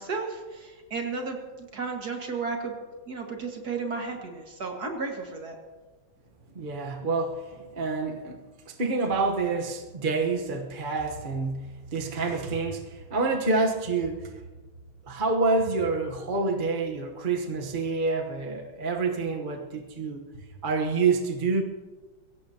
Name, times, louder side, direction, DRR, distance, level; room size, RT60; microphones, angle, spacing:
voice 1, 0.0-2.7 3.1-5.6, right 4 dB, 50° right, 2 dB, 2.3 m, -33 dB
voice 2, 6.5-8.4 8.7-14.3 15.1-21.6, right 3 dB, 30° right, 2 dB, 1.0 m, -28 dB
22.5 x 16.5 x 2.9 m, 1.3 s
omnidirectional pair, 2.3 m